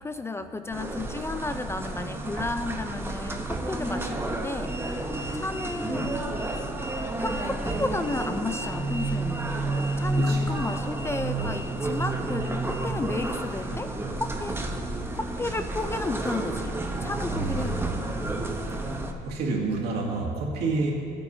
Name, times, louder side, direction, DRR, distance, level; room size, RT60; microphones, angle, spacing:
voice 1, 0.0-6.7 7.2-14.6 15.1-16.8 17.0-17.9, left 2 dB, 15° left, 9 dB, 0.4 m, -33 dB
sound 1, 0.7-19.1, right 2 dB, 15° right, 0.9 m, -30 dB
voice 2, 17.3-18.4 19.2-20.9, right 3 dB, 70° right, -3 dB, 2.2 m, -29 dB
17.0 x 8.9 x 2.7 m, 2.4 s
cardioid pair, 110°, 17 cm